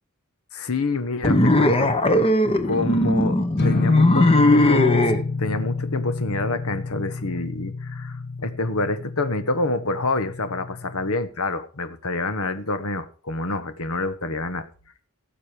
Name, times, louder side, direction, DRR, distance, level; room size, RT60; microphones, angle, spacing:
voice 1, 0.5-1.9 2.6-14.6, left 2 dB, 70° left, 1.3 m, -27 dB
sound 1, 1.2-5.2, left 1 dB, 25° left, 1.1 m, -19 dB
sound 2, 3.6-11.2, left 3 dB, 50° left, 1.6 m, -29 dB
17.0 x 7.5 x 5.0 m
head